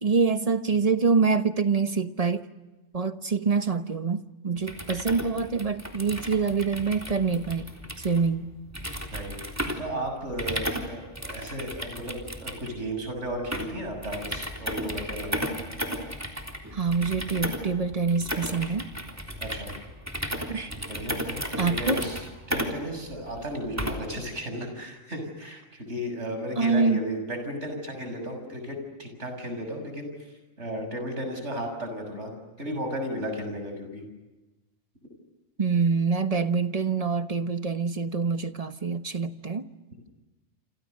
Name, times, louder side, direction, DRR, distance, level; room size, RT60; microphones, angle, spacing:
voice 1, 0.0-2.5 2.9-8.5 16.7-18.9 20.5-20.8 21.6-22.0 26.6-27.0 35.6-39.7, right 4 dB, 30° right, 1.1 m, -25 dB
sound 1, 4.6-24.2, equal, 10° right, 3.5 m, -34 dB
voice 2, 9.1-15.4 19.4-19.7 20.7-30.1 30.6-32.3 32.6-34.0, equal, 60° right, 7.0 m, -34 dB
28.5 x 27.5 x 6.6 m
omnidirectional pair, 1.4 m